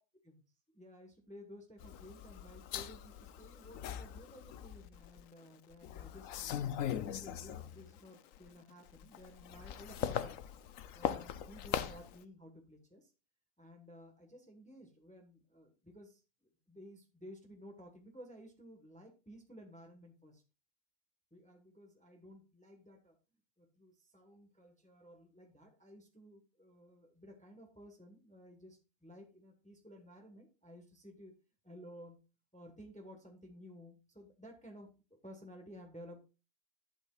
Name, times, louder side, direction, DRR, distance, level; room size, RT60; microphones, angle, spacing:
voice 1, 0.7-10.4 10.9-13.1 13.6-20.4 21.3-23.2 23.6-31.3 31.6-32.2 32.5-34.9 35.2-36.2, equal, 5° left, 3 dB, 1.3 m, -55 dB
sound 1, 1.8-5.2 5.7-8.0 8.3-12.2, left 10 dB, 70° left, 1.0 m, -40 dB
11.5 x 8.2 x 2.4 m, 0.31 s
omnidirectional pair, 1.5 m